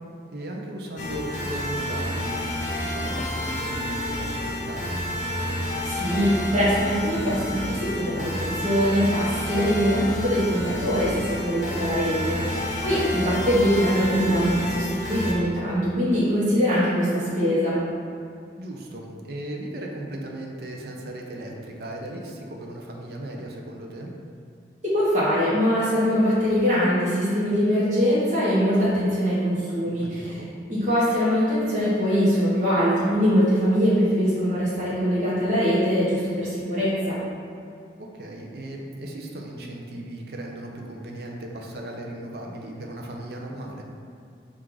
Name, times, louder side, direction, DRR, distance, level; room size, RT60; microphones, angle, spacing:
voice 1, 0.3-5.0 12.3-12.6 18.6-24.1 29.9-30.5 38.0-43.8, right 1 dB, 60° right, 0 dB, 0.5 m, -37 dB
sound 1, 1.0-15.3, left 1 dB, 45° left, 0.6 m, -29 dB
voice 2, 5.8-17.8 24.8-30.4 30.7-37.2, equal, 40° right, -10 dB, 0.8 m, -22 dB
4.5 x 2.4 x 3.8 m, 2.4 s
head